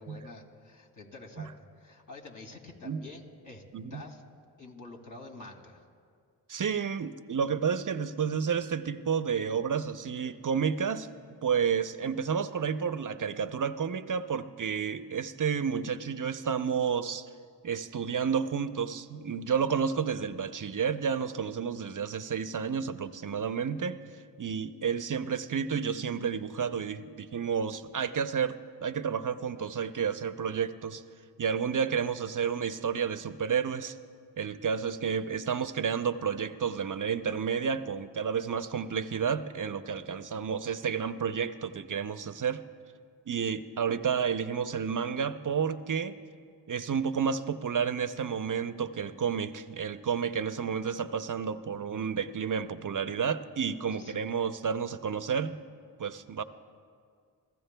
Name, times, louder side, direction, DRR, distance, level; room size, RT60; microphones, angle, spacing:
voice 1, 0.0-3.6 3.9-4.2 4.6-5.8 53.9-54.2, left 2 dB, 45° left, 1 dB, 2.4 m, -48 dB
voice 2, 6.5-11.1 11.4-17.3 17.6-24.0 24.4-31.0 31.4-34.0 34.4-42.6 43.3-46.2 46.7-55.6 56.0-56.4, right 6 dB, 45° right, 12 dB, 0.7 m, -31 dB
29.5 x 15.5 x 2.3 m, 2.1 s
cardioid pair, 45°, 44 cm